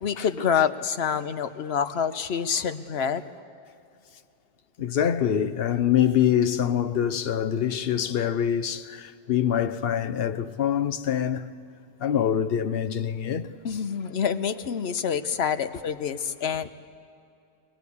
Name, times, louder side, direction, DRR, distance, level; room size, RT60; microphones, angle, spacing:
voice 1, 0.0-3.2 13.6-16.7, left 7 dB, 85° left, 1.1 m, -27 dB
voice 2, 4.8-11.5 12.0-13.5, left 9 dB, 70° left, 1.0 m, -25 dB
23.5 x 18.5 x 8.4 m
omnidirectional pair, 1.1 m